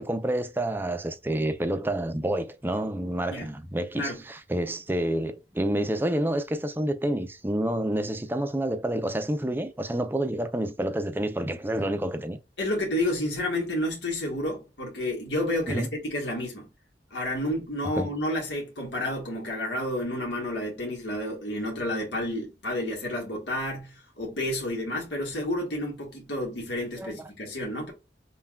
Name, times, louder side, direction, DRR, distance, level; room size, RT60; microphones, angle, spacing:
voice 1, 0.0-12.4 15.7-15.9 18.0-18.1 27.0-27.2, right 1 dB, 10° right, 0.5 m, -28 dB
voice 2, 12.6-16.7 17.1-27.9, left 1 dB, 80° left, 1.3 m, -30 dB
5.6 x 2.3 x 2.3 m
head